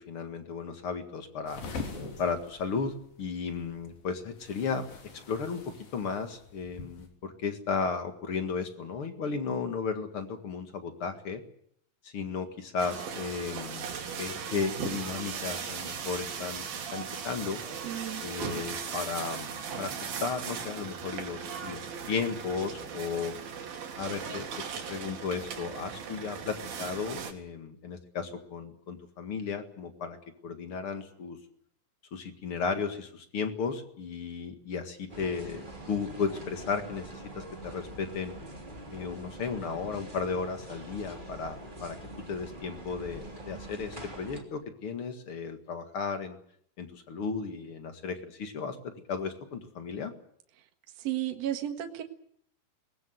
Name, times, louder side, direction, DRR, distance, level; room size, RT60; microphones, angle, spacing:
voice 1, 0.0-1.6 2.2-4.9 5.3-5.6 5.9-11.4 12.0-13.9 14.1-17.6 18.2-21.8 22.1-23.3 24.0-30.2 30.4-31.4 32.1-38.3 38.9-42.0 42.3-46.4 46.8-50.1, left 5 dB, 45° left, 7 dB, 2.3 m, -34 dB
sound 1, 1.5-7.1, left 4 dB, 80° left, 5.3 m, -44 dB
sound 2, 12.8-27.3, right 6 dB, 85° right, 4.2 m, -38 dB
voice 2, 17.8-18.2 51.0-52.0, right 12 dB, 55° right, 5 dB, 2.5 m, -33 dB
sound 3, 35.1-44.4, right 1 dB, 15° right, 2.9 m, -44 dB
22.5 x 20.0 x 7.8 m, 0.67 s
omnidirectional pair, 4.1 m